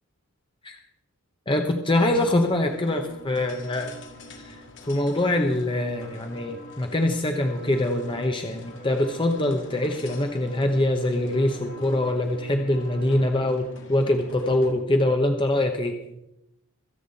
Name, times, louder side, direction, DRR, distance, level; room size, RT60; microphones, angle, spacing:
voice 1, 1.5-4.0 4.4-4.6 4.9-13.6 13.9-16.0, left 1 dB, 20° left, 4 dB, 1.0 m, -24 dB
sound 1, 2.1-14.9, left 3 dB, 55° left, 2.1 m, -47 dB
sound 2, 3.1-13.3, equal, 80° left, 5.1 m, -47 dB
24.5 x 8.3 x 4.2 m, 0.85 s
head